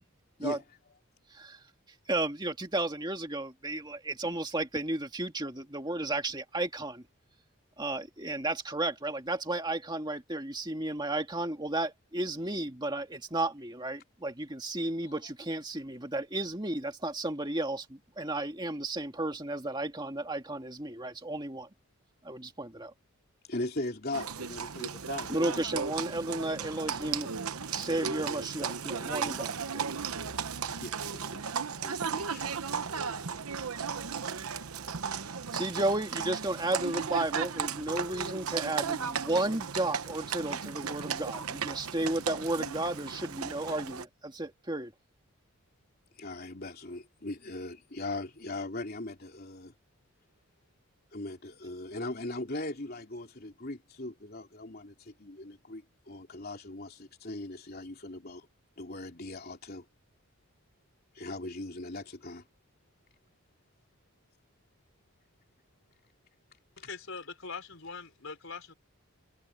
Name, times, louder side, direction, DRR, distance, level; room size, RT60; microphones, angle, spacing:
voice 1, 2.1-7.0 7.8-21.7 22.2-22.9 25.3-27.3 27.7-29.8 35.5-44.9, right 2 dB, 20° right, 2.1 m, -33 dB
voice 2, 23.5-25.5 30.8-31.4 31.8-32.5 46.2-49.7 51.1-58.5 58.8-59.8 61.1-62.4, left 2 dB, 45° left, 3.3 m, -39 dB
Livestock farm animals working animals, 24.1-44.0, right 6 dB, 85° right, 1.0 m, -35 dB
voice 3, 66.8-68.7, left 4 dB, 65° left, 4.7 m, -42 dB
head